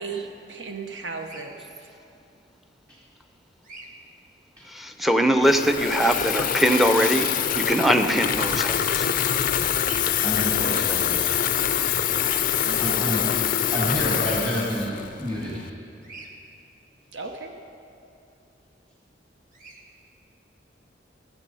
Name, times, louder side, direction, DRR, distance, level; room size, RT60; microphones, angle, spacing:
voice 1, 0.0-1.9 12.6-13.2 17.1-17.5, right 4 dB, 80° right, 4 dB, 0.8 m, -36 dB
Bird vocalization bird call bird song, 1.2-1.5 3.6-3.9 6.6-6.9 9.8-10.1 12.2-12.4 14.2-14.5 16.0-16.3 19.5-19.8, right 2 dB, 45° right, 1.3 m, -43 dB
voice 2, 4.6-9.2 9.6-9.8, equal, ahead, 6 dB, 0.5 m, -22 dB
Water tap faucet / Fill (with liquid), 5.4-15.7, left 9 dB, 45° left, 0.4 m, -25 dB
voice 3, 10.2-11.3 12.8-13.2 13.7-15.6, equal, 20° right, -6 dB, 1.9 m, -28 dB
15.5 x 7.5 x 5.4 m, 2.8 s
head